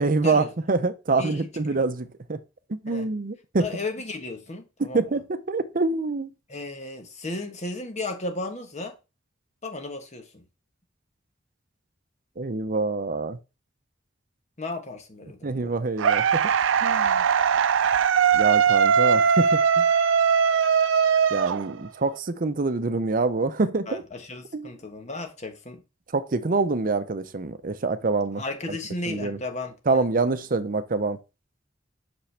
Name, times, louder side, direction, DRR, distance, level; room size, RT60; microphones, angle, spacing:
voice 1, 0.0-2.4 2.7-3.7 4.9-6.3 12.4-13.4 15.4-16.4 16.8-17.2 18.3-19.9 21.3-24.0 24.5-24.7 26.1-28.4 29.1-29.4 29.9-31.2, right 3 dB, 45° right, 0.7 m, -26 dB
voice 2, 3.6-5.0 6.5-9.0 9.6-10.4 14.6-15.7 23.9-25.8 28.3-30.0, left 2 dB, 40° left, 1.3 m, -35 dB
sound 1, 16.0-22.1, right 7 dB, 85° right, 0.4 m, -20 dB
6.1 x 5.3 x 3.4 m
head